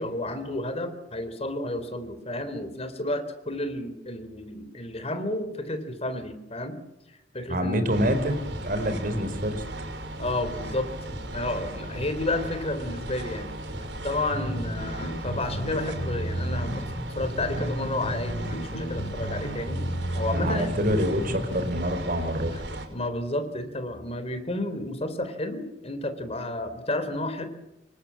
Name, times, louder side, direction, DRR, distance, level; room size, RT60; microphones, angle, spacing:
voice 1, 0.0-6.8 7.3-7.9 10.2-10.9 11.3-13.5 14.0-16.8 17.1-19.9 20.1-20.7 22.9-27.5, left 1 dB, 35° left, 10 dB, 3.8 m, -31 dB
voice 2, 7.5-9.6 20.3-22.5, equal, 50° right, 10 dB, 4.5 m, -26 dB
sound 1, 7.9-22.9, right 1 dB, 75° right, 5.7 m, -36 dB
sound 2, 14.3-21.7, equal, 85° left, 2.7 m, -33 dB
27.0 x 24.0 x 7.6 m, 0.93 s
head